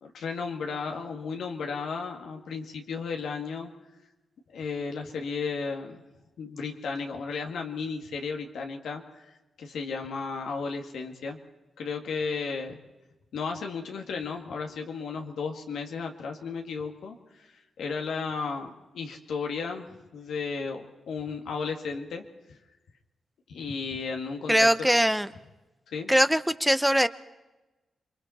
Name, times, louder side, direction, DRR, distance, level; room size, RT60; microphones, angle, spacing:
voice 1, 0.0-3.7 4.5-6.0 6.4-9.3 9.6-11.4 11.8-12.8 13.3-17.5 17.8-19.9 20.1-20.8 21.1-22.2 23.5-24.7 25.9-26.1, left 5 dB, 85° left, 3 dB, 2.0 m, -34 dB
voice 2, 24.5-25.3 26.1-27.1, equal, 5° right, 13 dB, 0.8 m, -21 dB
28.0 x 22.5 x 4.3 m, 1.1 s
cardioid pair, 70°, 0 cm